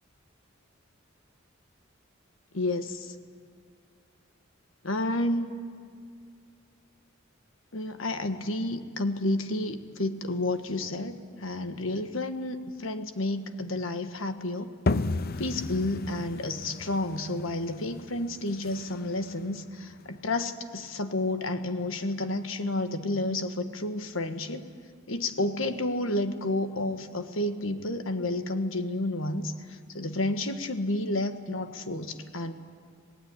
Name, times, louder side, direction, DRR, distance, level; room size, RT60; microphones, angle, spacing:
voice 1, 2.5-3.1 4.8-5.6 7.7-14.7 15.4-24.6 25.1-32.5, left 2 dB, 80° left, 8 dB, 1.4 m, -31 dB
sound 1, 14.9-20.3, left 3 dB, 50° left, 0.6 m, -34 dB
25.0 x 18.5 x 9.7 m, 2.1 s
head